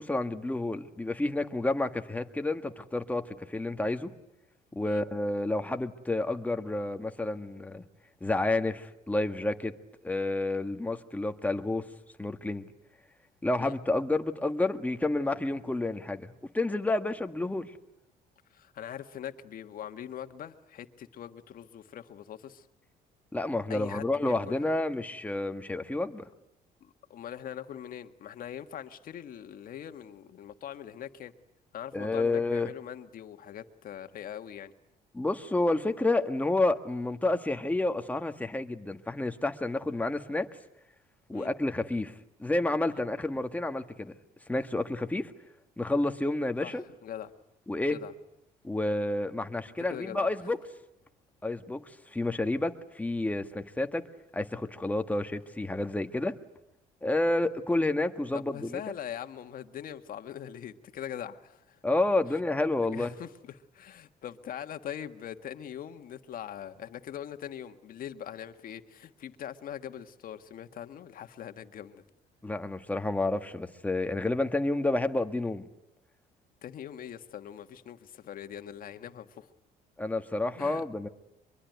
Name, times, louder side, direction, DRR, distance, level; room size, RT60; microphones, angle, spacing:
voice 1, 0.0-4.1 4.7-7.8 8.2-9.7 10.0-11.8 12.2-12.7 13.4-16.3 16.5-17.7 23.3-26.3 31.9-32.7 35.1-40.5 41.3-44.1 44.5-45.3 45.8-46.8 47.7-48.0 48.6-50.6 51.4-51.8 52.1-54.0 54.3-56.4 57.0-58.8 61.8-63.1 72.4-75.7 80.0-81.1, left 2 dB, 10° left, 7 dB, 1.6 m, -30 dB
voice 2, 18.5-22.7 23.7-24.7 26.8-31.3 31.7-34.7 41.3-41.5 46.6-47.3 47.9-48.1 49.9-50.5 58.3-61.8 62.3-62.4 62.9-72.0 76.6-79.5 80.6-80.8, left 10 dB, 55° left, 8 dB, 1.7 m, -42 dB
24.0 x 23.0 x 9.3 m, 0.85 s
cardioid pair, 110°, 17 cm